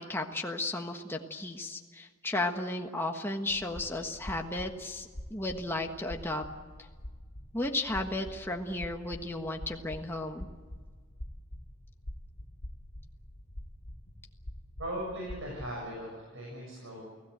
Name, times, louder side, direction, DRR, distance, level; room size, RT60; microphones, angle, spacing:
voice 1, 0.0-6.4 6.8-6.9 7.5-10.5, left 2 dB, 10° left, 2 dB, 1.4 m, -34 dB
sound 1, 3.5-16.0, left 1 dB, 65° left, 2.5 m, -46 dB
voice 2, 14.8-17.0, right 1 dB, 65° right, -2 dB, 7.1 m, -38 dB
29.5 x 17.0 x 8.0 m, 1.5 s
head